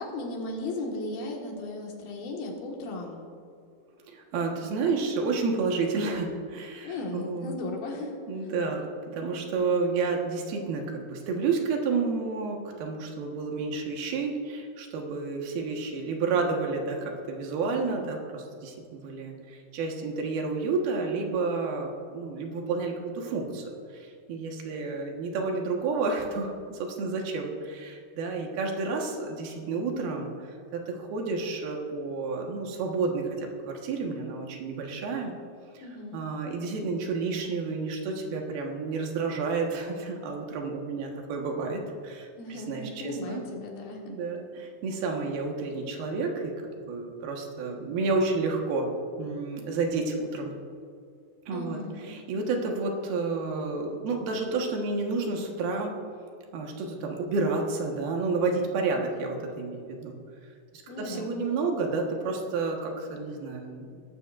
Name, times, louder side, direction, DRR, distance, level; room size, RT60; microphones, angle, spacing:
voice 1, 0.0-3.2 6.8-8.2 35.8-36.2 42.4-44.0 51.5-52.1 60.9-61.5, left 2 dB, 75° left, 0 dB, 3.5 m, -36 dB
voice 2, 4.0-7.5 8.3-30.3 30.7-33.5 33.8-35.3 35.7-35.8 36.1-43.4 44.1-46.5 46.9-48.9 49.2-50.6 51.5-51.8 52.0-55.9 56.5-60.2 61.0-64.0, right 4 dB, 85° right, 1 dB, 3.3 m, -30 dB
21.0 x 12.0 x 2.5 m, 2.4 s
omnidirectional pair, 4.2 m